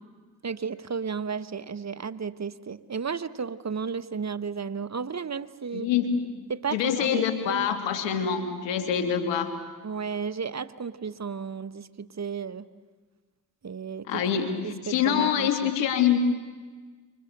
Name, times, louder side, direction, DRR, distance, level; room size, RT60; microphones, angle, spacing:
voice 1, 0.4-5.9 6.5-7.7 9.8-12.7 13.6-14.2 14.6-15.7, right 6 dB, 40° right, 13 dB, 1.3 m, -33 dB
voice 2, 5.7-6.3 6.7-9.5 14.1-16.2, left 8 dB, 85° left, 6 dB, 2.7 m, -25 dB
29.0 x 25.0 x 6.8 m, 1.4 s
supercardioid pair, 45°, 43 cm